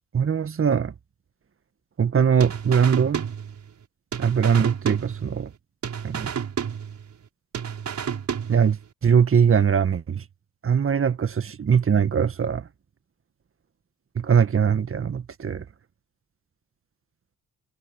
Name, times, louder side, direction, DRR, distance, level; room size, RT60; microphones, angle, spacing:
voice 1, 0.1-0.9 2.0-3.3 4.2-5.5 6.0-6.3 8.5-10.2 10.6-12.7 14.2-15.7, right 7 dB, 40° right, 1.8 m, -21 dB
sound 1, 2.4-3.8 4.1-5.6 5.8-7.3 7.5-8.9, right 7 dB, 55° right, 5.9 m, -31 dB
supercardioid pair, 65°, 33 cm